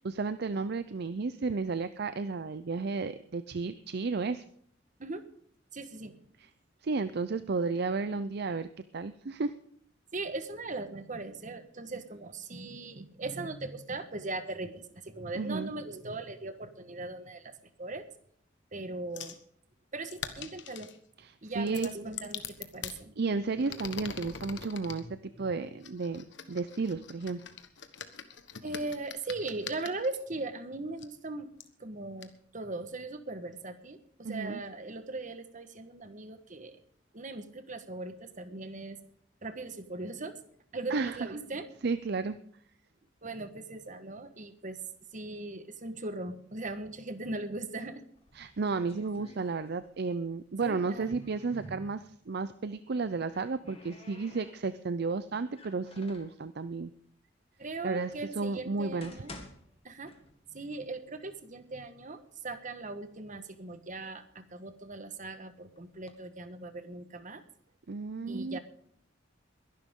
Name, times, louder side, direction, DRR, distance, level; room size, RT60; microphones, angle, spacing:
voice 1, 0.0-4.4 6.4-6.5 6.8-8.7 8.9-9.5 15.3-15.7 21.2-22.1 23.2-25.0 25.4-27.4 34.2-34.6 40.9-41.2 41.8-42.4 48.3-56.9 57.8-59.1 67.9-68.6, right 4 dB, 60° right, 13 dB, 0.6 m, -33 dB
voice 2, 5.7-6.1 10.1-17.5 17.8-18.0 18.7-19.4 19.9-20.9 21.4-23.1 23.6-23.8 24.4-24.7 25.0-25.5 28.6-31.5 31.8-36.8 37.1-39.0 39.4-40.4 40.7-41.7 43.2-44.8 45.1-48.0 50.6-51.9 57.6-59.3 59.8-60.1 60.5-67.4 68.3-68.6, right 2 dB, 45° right, 10 dB, 1.4 m, -39 dB
sound 1, 19.2-19.4 20.1-21.0 21.7-23.0 23.6-25.0 25.8-30.2 31.0-31.1 31.6-31.7 32.2-32.3, left 8 dB, 70° left, 1.3 m, -43 dB
sound 2, 48.1-50.0 50.3-51.8 52.9-54.9 55.5-56.4 57.2-57.3 57.9-58.0 58.7-60.7 61.0-61.1 61.8-61.9 62.3-62.9 63.4-65.1 65.8-66.1, left 2 dB, 30° left, 2.0 m, -53 dB
22.0 x 11.5 x 3.7 m, 0.63 s
head